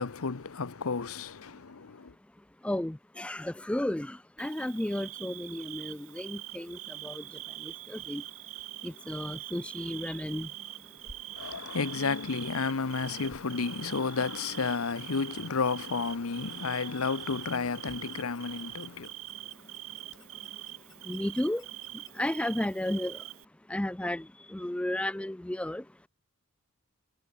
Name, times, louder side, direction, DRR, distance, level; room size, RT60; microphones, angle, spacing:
voice 1, 0.0-2.1 11.3-19.1, left 4 dB, 85° left, 0.9 m, -32 dB
voice 2, 2.6-7.2 7.6-8.2 8.8-10.5 21.1-21.6 22.2-23.2 23.7-25.8, left 1 dB, 5° left, 0.3 m, -33 dB
Bird / Cricket, 4.4-23.4, right 15 dB, 80° right, 1.2 m, -44 dB
sound 1, 8.0-8.4 9.1-9.6 10.9-11.3 12.0-14.4 15.0-15.4 16.5-16.9 17.6-17.7 17.9-18.3 19.4-19.9 20.2-20.3 20.6-20.7 21.1-21.5 21.8-22.8 23.3-23.7 24.0-25.2 25.5-25.6, right 1 dB, 55° right, 6.2 m, -66 dB
sound 2, 16.2-23.2, left 2 dB, 55° left, 5.0 m, -60 dB
head